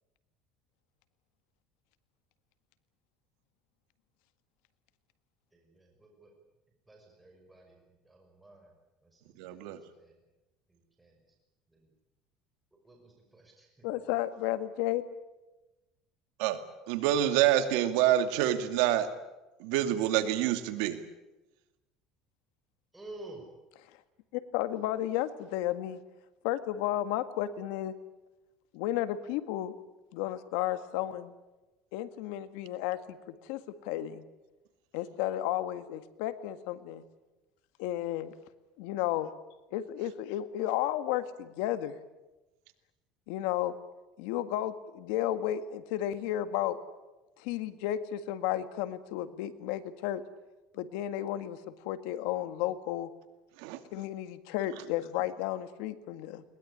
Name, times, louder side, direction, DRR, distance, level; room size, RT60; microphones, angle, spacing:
voice 1, 5.5-6.3 6.9-7.8 8.1-8.7 9.1-9.6 10.0-10.1 10.7-11.1 12.8-13.9 22.9-23.5, right 2 dB, 10° right, 1 dB, 5.7 m, -51 dB
voice 2, 9.4-9.8 16.4-16.6 16.9-19.1 19.6-21.0 53.6-53.8, right 12 dB, 80° right, 9 dB, 2.3 m, -27 dB
voice 3, 13.8-15.0 24.3-26.0 26.4-27.9 28.7-29.7 30.1-31.3 31.9-34.2 34.9-37.0 37.8-38.3 38.8-39.3 39.7-41.9 43.3-43.7 44.2-46.8 47.4-50.2 50.7-53.1 53.9-56.4, left 13 dB, 80° left, 12 dB, 1.7 m, -33 dB
21.5 x 20.5 x 10.0 m, 1.1 s
cardioid pair, 130°, 0 cm